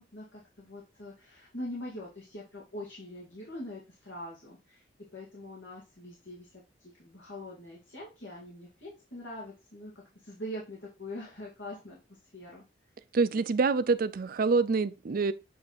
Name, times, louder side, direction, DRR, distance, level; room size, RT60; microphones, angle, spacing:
voice 1, 0.0-6.5 6.8-12.6, left 1 dB, 80° left, 2.2 m, -43 dB
voice 2, 13.1-15.3, right 4 dB, 50° right, 0.4 m, -26 dB
7.8 x 3.3 x 4.1 m
head